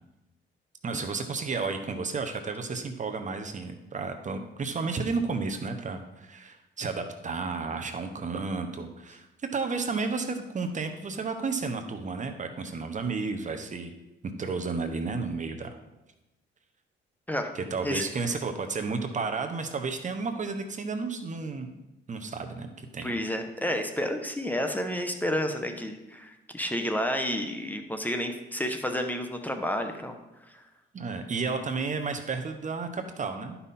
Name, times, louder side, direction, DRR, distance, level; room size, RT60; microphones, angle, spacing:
voice 1, 0.8-9.3 9.5-13.9 14.4-15.8 17.5-21.7 22.1-23.1 30.9-33.6, right 4 dB, 40° right, 6 dB, 1.0 m, -32 dB
voice 2, 23.0-30.2 30.5-30.6, equal, 10° left, 5 dB, 1.0 m, -30 dB
12.0 x 5.7 x 4.3 m, 0.97 s
cardioid pair, 90°, 20 cm